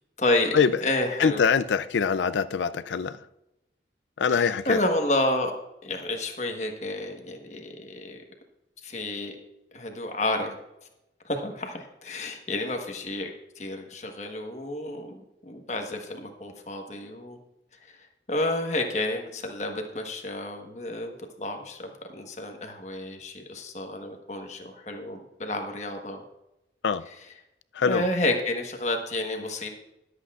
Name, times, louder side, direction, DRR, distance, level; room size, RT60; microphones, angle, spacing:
voice 1, 0.2-1.4 4.3-5.5 5.8-8.2 8.8-9.3 9.7-10.6 11.2-17.4 17.9-18.0 18.3-26.2 27.8-29.7, left 1 dB, 40° left, 1.3 m, -30 dB
voice 2, 1.2-3.2 4.2-4.8 26.8-27.1 27.7-28.0, left 6 dB, 85° left, 0.4 m, -23 dB
21.0 x 8.2 x 2.4 m
head